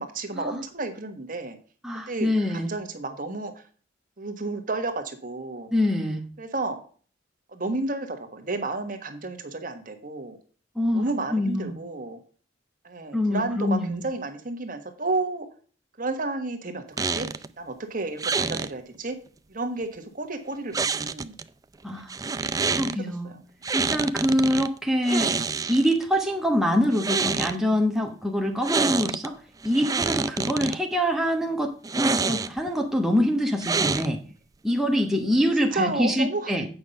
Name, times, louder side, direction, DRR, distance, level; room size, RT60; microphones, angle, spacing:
voice 1, 0.0-1.6 2.1-3.6 4.2-5.7 6.4-6.8 7.5-10.4 10.9-12.2 12.8-15.5 16.0-17.3 17.6-19.2 19.5-21.3 22.5-23.0 23.2-23.3 30.6-30.8 35.7-36.5, right 3 dB, 45° right, 6 dB, 1.4 m, -31 dB
voice 2, 1.8-2.7 5.7-6.2 10.7-11.7 13.1-14.0 21.8-22.1 22.8-23.3 23.7-25.3 25.7-29.4 29.6-34.2 34.6-36.7, equal, ahead, 1 dB, 1.1 m, -25 dB
sound 1, 17.0-17.5 18.2-18.7 20.7-21.4 22.1-23.0 23.6-24.7 25.0-26.0 26.8-27.6 28.6-29.3 29.6-30.8 31.8-32.7 33.6-34.3, right 4 dB, 20° right, 0.4 m, -27 dB
8.6 x 5.7 x 5.2 m, 0.41 s
head